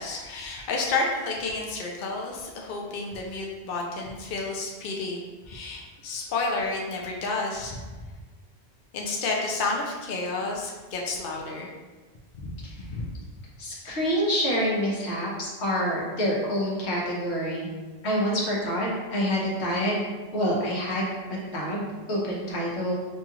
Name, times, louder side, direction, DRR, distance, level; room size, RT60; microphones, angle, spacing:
voice 1, 0.0-7.8 8.9-11.7 12.4-12.5 12.9-13.1, left 3 dB, 60° left, -1 dB, 0.7 m, -30 dB
voice 2, 13.6-17.7 18.0-20.0 20.3-22.9, equal, 85° left, -4 dB, 1.3 m, -27 dB
5.3 x 2.4 x 2.9 m, 1.3 s
omnidirectional pair, 1.1 m